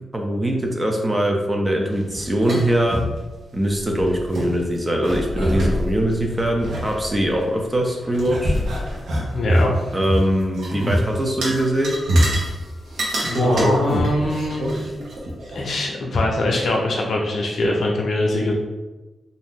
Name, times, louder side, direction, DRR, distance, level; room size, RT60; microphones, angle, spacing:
voice 1, 0.1-3.0 3.5-8.5 9.9-12.0, right 1 dB, 15° right, 1 dB, 0.4 m, -22 dB
sound 1, 2.0-3.2 3.5-3.6 3.8-4.5 5.0-7.6 8.0-10.2 10.5-11.0 11.4-12.5 12.9-15.6, equal, 75° right, 0.8 m, -23 dB
voice 2, 9.3-9.7 13.4-14.7 15.5-18.5, left 2 dB, 60° left, -1 dB, 0.6 m, -22 dB
2.6 x 2.4 x 3.6 m, 1.1 s
wide cardioid pair, 145°, 0 cm